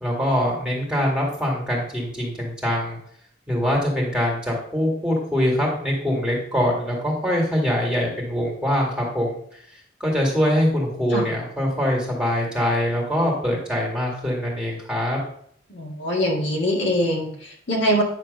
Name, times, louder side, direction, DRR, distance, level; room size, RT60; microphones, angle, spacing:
voice 1, 0.0-3.0 3.5-9.3 10.0-15.2, equal, 5° right, -3 dB, 2.0 m, -23 dB
voice 2, 15.7-18.0, equal, 65° left, -1 dB, 1.7 m, -23 dB
9.3 x 3.3 x 6.5 m, 0.64 s
head